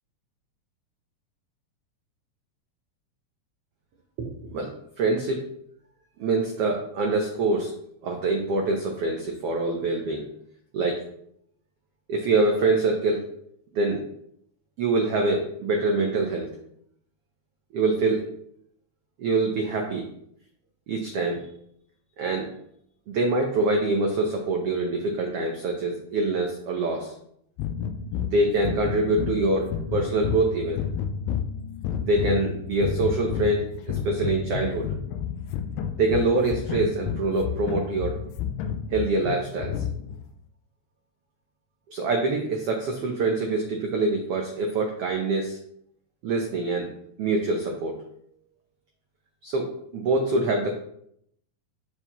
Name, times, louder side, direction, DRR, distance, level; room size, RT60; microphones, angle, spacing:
voice 1, 4.2-4.7 5.0-5.4 6.2-7.7 8.0-10.2 10.7-11.0 12.1-13.3 13.7-14.0 14.8-16.5 17.7-18.2 19.2-20.1 20.9-21.5 22.2-22.5 23.1-27.1 28.2-30.8 32.0-34.9 36.0-38.2 38.9-39.7 41.9-45.6 46.2-46.9 47.2-48.0 49.4-50.7, right 2 dB, 85° right, 1 dB, 1.3 m, -25 dB
sound 1, 27.6-40.3, left 8 dB, 80° left, 2.2 m, -31 dB
12.5 x 4.5 x 3.0 m, 0.71 s
omnidirectional pair, 3.9 m